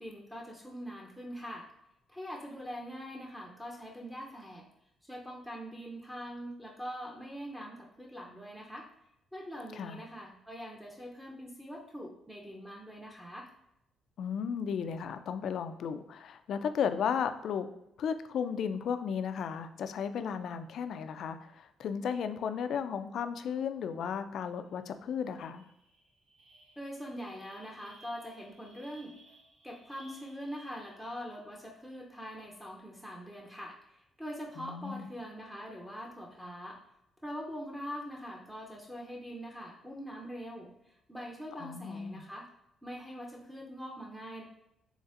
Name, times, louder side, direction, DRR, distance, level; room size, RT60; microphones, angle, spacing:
voice 1, 0.0-1.7 2.1-4.7 5.0-8.9 9.3-13.5 26.8-29.1 29.6-33.8 34.2-36.8 37.2-42.5 42.8-44.4, equal, 5° right, -2 dB, 0.6 m, -43 dB
voice 2, 14.2-17.7 18.0-25.7 34.6-35.1 41.6-42.2, left 7 dB, 70° left, 10 dB, 0.3 m, -34 dB
sound 1, 24.6-24.8 25.1-31.5, right 1 dB, 80° right, 1.2 m, -60 dB
4.0 x 3.2 x 2.5 m, 0.83 s
cardioid pair, 90°, 0 cm